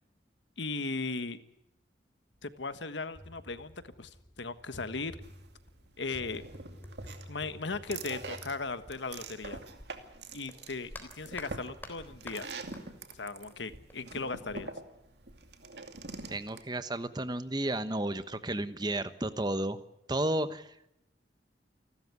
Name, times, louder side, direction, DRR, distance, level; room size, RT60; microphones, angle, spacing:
voice 1, 0.6-1.4 2.4-5.2 6.0-6.4 7.3-9.7 10.3-12.5 13.1-14.7, left 3 dB, 80° left, 11 dB, 1.4 m, -37 dB
sound 1, 2.3-2.4 2.7-10.1 10.5-12.8 13.1-14.3, left 1 dB, 10° left, 3.7 m, -50 dB
sound 2, 5.2-16.6, right 3 dB, 65° right, 2.5 m, -45 dB
voice 2, 16.3-19.8 20.1-20.9, right 1 dB, 25° right, 12 dB, 1.1 m, -32 dB
29.0 x 13.0 x 9.6 m, 0.82 s
head